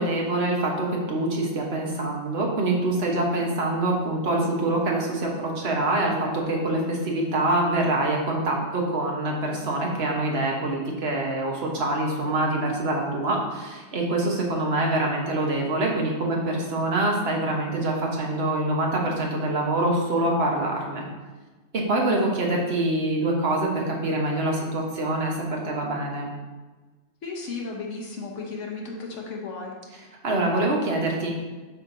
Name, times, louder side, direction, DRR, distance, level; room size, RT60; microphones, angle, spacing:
voice 1, 0.0-21.0 21.9-26.3 30.2-31.3, right 2 dB, 55° right, 0 dB, 1.3 m, -25 dB
voice 2, 27.2-29.7, left 4 dB, 75° left, -1 dB, 1.3 m, -34 dB
7.2 x 5.8 x 2.7 m, 1.2 s
omnidirectional pair, 1.3 m